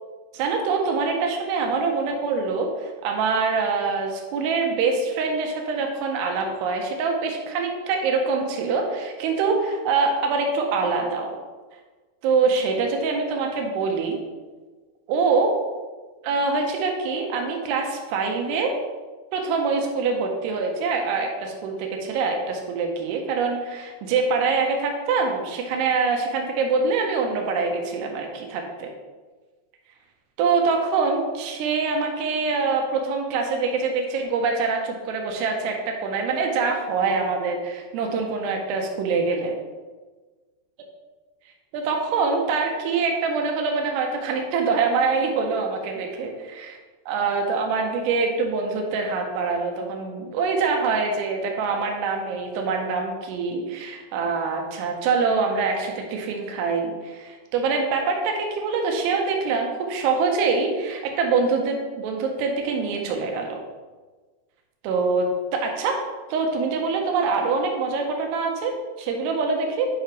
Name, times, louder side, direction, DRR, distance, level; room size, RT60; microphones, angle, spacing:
voice 1, 0.3-11.4 12.2-14.2 15.1-15.5 16.2-18.8 19.3-28.9 30.4-39.6 41.7-46.3 46.6-46.8 47.1-63.6 64.8-66.0 66.3-69.9, right 4 dB, 80° right, 2 dB, 2.5 m, -24 dB
8.5 x 5.7 x 3.0 m, 1.3 s
omnidirectional pair, 5.5 m